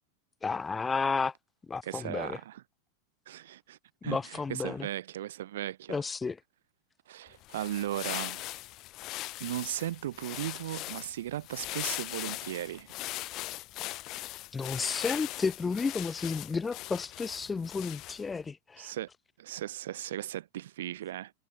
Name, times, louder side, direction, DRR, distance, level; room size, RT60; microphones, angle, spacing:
voice 1, 0.4-1.3 1.7-2.4 4.0-4.9 5.9-6.4 14.5-18.9, left 4 dB, 15° left, 4.1 m, -32 dB
voice 2, 1.8-2.6 3.3-3.8 4.0-6.0 7.1-8.5 9.4-12.9 18.8-19.1 19.4-21.3, right 13 dB, 60° right, 2.0 m, -37 dB
sound 1, 7.3-18.4, left 18 dB, 40° left, 1.4 m, -40 dB
figure-of-eight pair, 90°, 0 cm